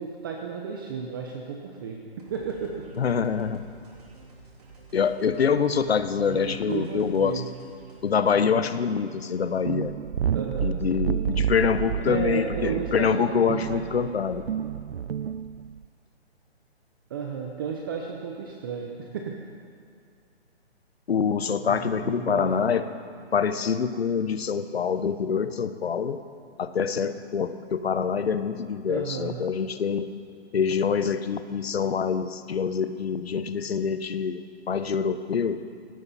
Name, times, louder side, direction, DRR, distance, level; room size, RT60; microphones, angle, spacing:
voice 1, 0.0-2.0 2.3-2.7 6.2-7.5 10.3-10.7 12.0-13.8 17.1-19.3 21.6-22.9 28.9-29.4, right 6 dB, 20° right, 1 dB, 0.8 m, -33 dB
sound 1, 2.2-8.2, right 3 dB, 35° right, 3.4 m, -49 dB
voice 2, 3.0-3.7 4.9-7.4 8.0-9.9 10.6-14.5 21.1-22.9 23.3-26.2 26.6-30.1 30.5-34.4 34.7-35.6, left 6 dB, 70° left, 12 dB, 1.1 m, -25 dB
sound 2, 9.7-15.8, right 9 dB, 65° right, 0.5 m, -30 dB
18.5 x 16.5 x 4.2 m, 2.2 s
hypercardioid pair, 160°, 33 cm